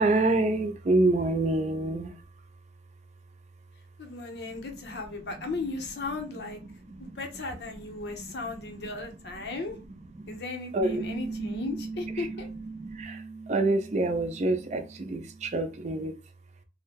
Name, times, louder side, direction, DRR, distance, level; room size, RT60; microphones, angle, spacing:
voice 1, 0.0-2.5 4.5-5.0 5.3-5.5 6.6-7.2 7.6-7.7 8.0-9.5 9.7-9.8 10.1-10.4 10.7-11.2 12.1-12.3 12.8-16.2, right 2 dB, 40° right, 0.4 m, -28 dB
voice 2, 4.0-6.6 7.0-9.8 10.3-12.5, left 3 dB, 70° left, 0.7 m, -36 dB
Piano, 10.8-15.9, right 3 dB, 5° right, 0.8 m, -40 dB
2.7 x 2.1 x 3.4 m
head